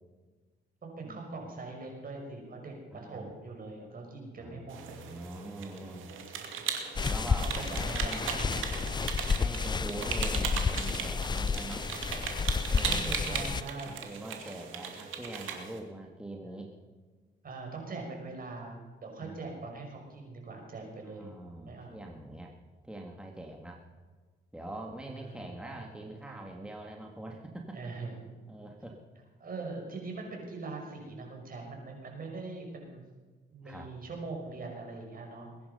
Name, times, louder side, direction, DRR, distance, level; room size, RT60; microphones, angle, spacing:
voice 1, 0.8-4.8 6.0-6.2 7.4-9.0 12.8-14.0 17.4-21.3 21.6-22.0 25.1-26.4 27.7-28.3 29.4-33.0 33.5-35.5, right 3 dB, 45° right, 1 dB, 5.8 m, -42 dB
voice 2, 2.9-3.4 4.4-6.1 7.1-8.3 9.4-11.9 12.7-13.6 14.0-16.7 19.2-19.5 21.1-22.5 22.8-23.8 24.5-27.9 28.5-29.0 33.6-33.9, right 1 dB, 5° right, 1 dB, 2.0 m, -43 dB
sound 1, 4.7-15.8, right 7 dB, 80° right, 2.5 m, -38 dB
sound 2, 7.0-13.6, left 5 dB, 20° left, 0.4 m, -31 dB
21.5 x 10.5 x 5.6 m, 1.4 s
cardioid pair, 90°, 20 cm